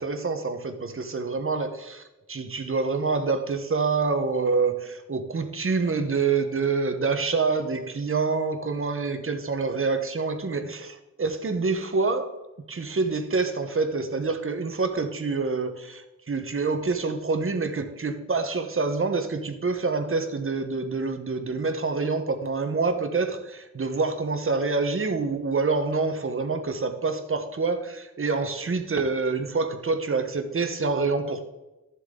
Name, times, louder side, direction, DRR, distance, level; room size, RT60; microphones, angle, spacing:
voice 1, 0.0-2.0 2.3-12.3 12.7-31.4, right 4 dB, 45° right, 7 dB, 1.0 m, -26 dB
13.0 x 7.2 x 3.7 m, 1.0 s
wide cardioid pair, 95°, 31 cm